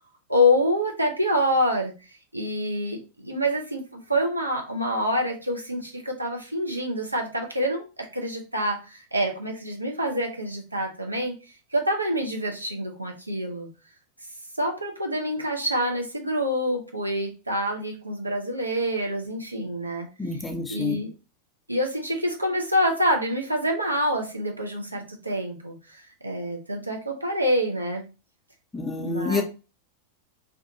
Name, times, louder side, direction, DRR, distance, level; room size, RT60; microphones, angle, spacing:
voice 1, 0.3-1.9 2.3-11.3 11.7-13.7 14.6-20.1 20.7-21.1 21.7-28.0 28.9-29.4, equal, 85° right, 1 dB, 0.6 m, -26 dB
voice 2, 20.2-21.0 28.7-29.4, left 3 dB, 10° left, 4 dB, 0.5 m, -28 dB
2.5 x 2.3 x 2.6 m, 0.31 s
figure-of-eight pair, 90°, 0 cm